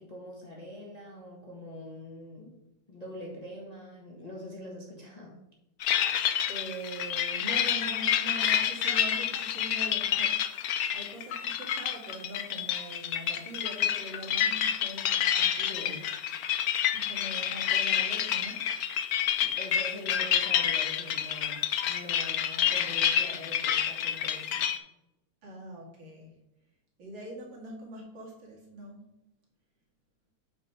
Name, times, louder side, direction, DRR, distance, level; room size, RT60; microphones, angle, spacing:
voice 1, 0.0-2.5 2.9-5.4 15.7-16.0 19.4-24.7, left 1 dB, 20° left, -3 dB, 1.6 m, -44 dB
sound 1, 5.8-24.8, left 9 dB, 90° left, 0.8 m, -28 dB
voice 2, 6.5-16.0 16.9-18.7 25.4-26.3 27.0-29.1, right 1 dB, 60° right, -2 dB, 2.8 m, -43 dB
8.6 x 4.7 x 5.6 m, 0.90 s
omnidirectional pair, 2.4 m